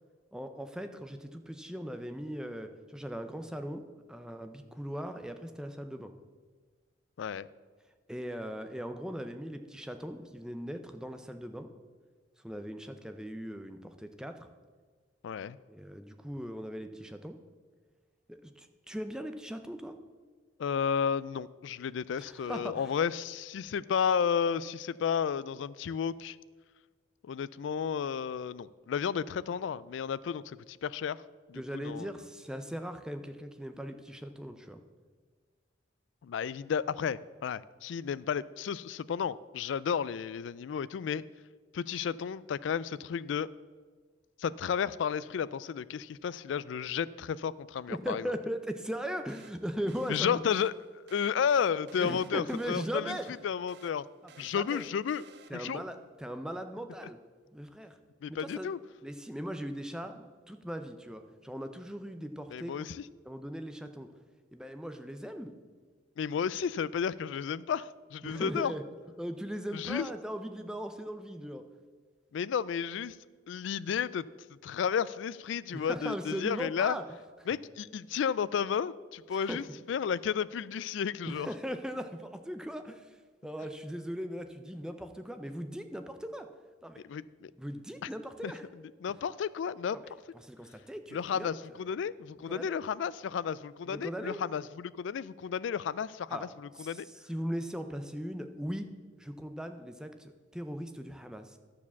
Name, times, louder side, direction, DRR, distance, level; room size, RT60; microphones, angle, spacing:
voice 1, 0.3-6.1 8.1-11.7 12.4-14.5 15.7-17.4 18.3-20.0 22.2-22.9 31.5-34.8 47.9-50.4 52.0-53.4 54.2-54.8 55.5-57.2 57.5-58.0 58.3-58.7 59.0-62.9 63.2-64.1 64.5-65.5 68.2-68.8 69.2-71.7 75.7-77.0 79.3-79.6 81.3-83.2 83.4-86.5 86.8-87.0 87.6-88.6 89.9-91.5 92.5-92.8 93.9-94.4 96.3-96.5 96.8-98.9 99.2-101.6, equal, 5° right, 7 dB, 0.5 m, -39 dB
voice 2, 15.2-15.6 20.6-26.4 27.2-31.2 31.5-32.1 36.2-41.2 41.7-43.5 44.4-48.2 50.1-50.7 51.1-53.2 53.4-54.0 54.4-55.2 55.5-55.8 58.2-58.8 62.5-63.0 66.2-68.7 69.7-70.1 72.3-73.2 73.5-74.2 74.6-77.0 77.5-81.5 87.1-87.5 88.4-88.5 89.0-90.0 91.1-97.1, left 7 dB, 75° left, 18 dB, 0.3 m, -32 dB
sound 1, 49.3-55.9, right 5 dB, 60° right, 0.6 m, -57 dB
11.5 x 4.9 x 7.0 m, 1.5 s
head